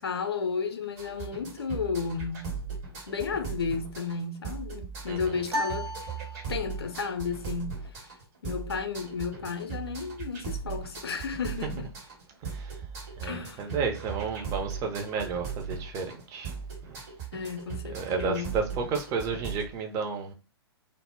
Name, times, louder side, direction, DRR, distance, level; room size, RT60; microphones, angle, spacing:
voice 1, 0.0-2.6 3.1-5.9 6.5-7.9 8.4-11.9 13.2-13.7 17.3-18.5, left 5 dB, 65° left, 0.5 m, -33 dB
sound 1, 1.0-19.7, right 6 dB, 40° right, 1.0 m, -38 dB
sound 2, 5.5-7.0, left 1 dB, 80° right, 0.5 m, -34 dB
voice 2, 12.4-12.7 13.2-16.5 16.9-17.0 17.9-20.3, right 5 dB, 25° right, 0.5 m, -32 dB
2.0 x 2.0 x 3.4 m
figure-of-eight pair, 110°, 14 cm